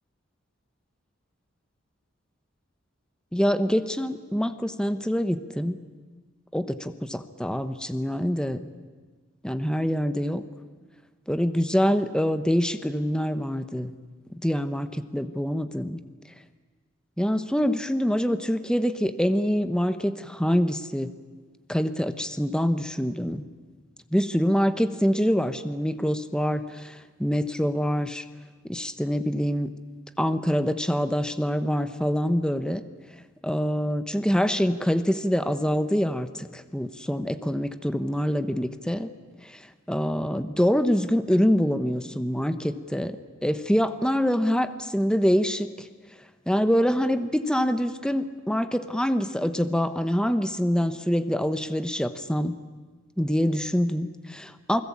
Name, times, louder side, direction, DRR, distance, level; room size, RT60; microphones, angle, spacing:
voice 1, 3.3-5.8 6.5-8.7 9.4-10.4 11.3-13.9 14.3-16.0 17.2-21.1 21.7-23.4 24.1-28.2 28.7-29.7 30.2-32.8 33.4-39.1 39.4-39.6 39.9-43.2 43.4-45.9 46.5-52.5 53.2-54.8, equal, 5° left, 11 dB, 1.1 m, -25 dB
28.5 x 20.5 x 8.7 m, 1.4 s
head